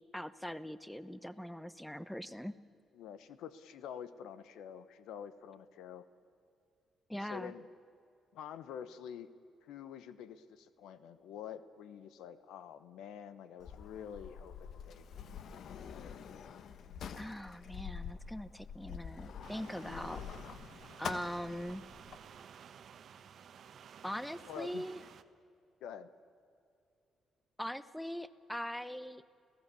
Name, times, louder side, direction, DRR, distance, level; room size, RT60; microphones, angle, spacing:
voice 1, 0.1-2.6 7.1-7.5 17.2-20.2 21.0-21.9 24.0-25.0 27.6-29.2, equal, 5° left, 15 dB, 0.8 m, -41 dB
voice 2, 2.9-6.1 7.2-7.7 8.3-9.3 9.6-16.2 24.5-24.9 25.8-26.1, left 8 dB, 85° left, 13 dB, 1.0 m, -48 dB
Sliding door, 13.6-22.2, left 7 dB, 65° left, 1.1 m, -46 dB
sound 1, 19.4-25.2, right 8 dB, 60° right, 1.1 m, -54 dB
30.0 x 16.5 x 6.9 m, 2.6 s
cardioid pair, 90°, 0 cm